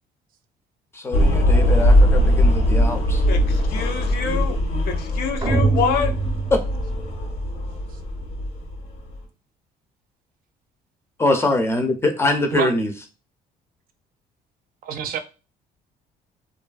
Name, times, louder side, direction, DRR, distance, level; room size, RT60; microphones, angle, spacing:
voice 1, 0.9-3.2 6.5-6.6 11.2-12.9, left 2 dB, 15° left, 0.5 m, -23 dB
sound 1, 1.1-9.2, equal, 85° left, 0.9 m, -20 dB
voice 2, 3.3-4.6 4.9-6.1, left 6 dB, 65° left, 0.6 m, -26 dB
sound 2, 5.4-7.5, right 4 dB, 30° right, 0.7 m, -24 dB
voice 3, 14.8-15.2, right 7 dB, 60° right, 0.5 m, -26 dB
2.6 x 2.5 x 2.3 m
cardioid pair, 110°, 17 cm